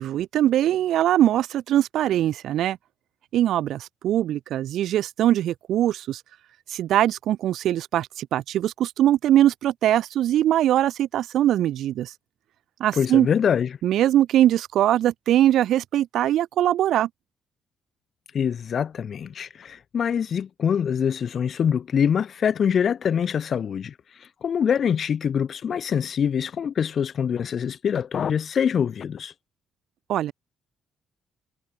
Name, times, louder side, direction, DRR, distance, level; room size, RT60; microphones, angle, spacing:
voice 1, 0.0-2.8 3.3-6.2 6.7-12.1 12.8-13.3 13.8-17.1 30.1-30.3, right 12 dB, 75° right, 0.4 m, -21 dB
voice 2, 12.9-13.8 18.3-29.3, left 7 dB, 55° left, 0.4 m, -24 dB
cardioid pair, 90°, 0 cm